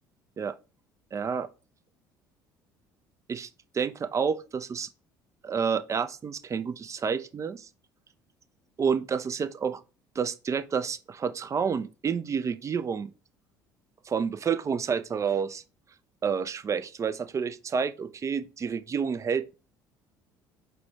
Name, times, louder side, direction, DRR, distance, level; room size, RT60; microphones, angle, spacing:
voice 1, 1.1-1.5 3.3-3.5 3.7-4.9 5.4-7.7 8.8-9.8 10.2-13.1 14.1-15.6 16.2-19.5, right 6 dB, 30° right, 0.4 m, -29 dB
4.3 x 2.2 x 4.3 m
figure-of-eight pair, 55°, 11 cm